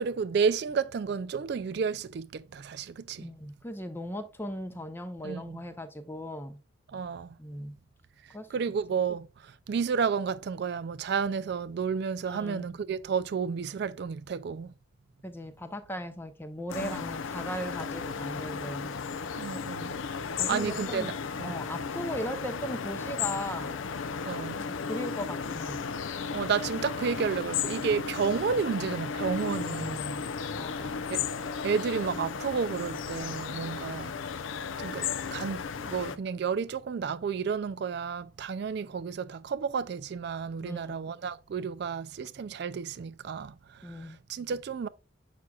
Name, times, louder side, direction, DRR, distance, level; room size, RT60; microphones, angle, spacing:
voice 1, 0.0-3.3 5.2-5.6 6.9-7.3 8.2-14.7 16.8-17.0 19.3-20.0 20.5-21.5 24.2-24.6 26.3-30.1 30.8-31.2 31.6-34.1 34.8-44.9, right 6 dB, 55° right, 0.3 m, -31 dB
voice 2, 3.2-6.6 7.4-7.8 8.3-8.7 12.3-12.6 15.2-18.9 20.4-21.1 21.4-23.8 24.6-25.9 29.7-30.2 30.5-31.0 40.6-41.1 43.8-44.2, equal, 10° left, 0.6 m, -38 dB
sound 1, 16.7-36.2, left 6 dB, 70° left, 0.5 m, -34 dB
7.4 x 5.9 x 2.3 m
head